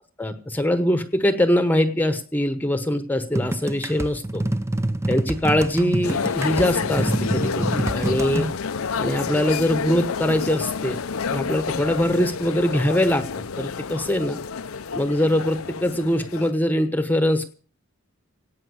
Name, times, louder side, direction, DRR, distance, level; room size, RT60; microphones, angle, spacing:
voice 1, 0.2-4.4 5.1-8.5 9.0-11.0 11.3-13.2 13.6-14.4 14.9-17.4, left 1 dB, 10° left, 9 dB, 1.1 m, -22 dB
sound 1, 3.3-8.5, right 1 dB, 15° right, 0.6 m, -26 dB
sound 2, 6.0-16.5, left 5 dB, 75° left, 0.7 m, -29 dB
17.5 x 5.9 x 9.8 m, 0.41 s
head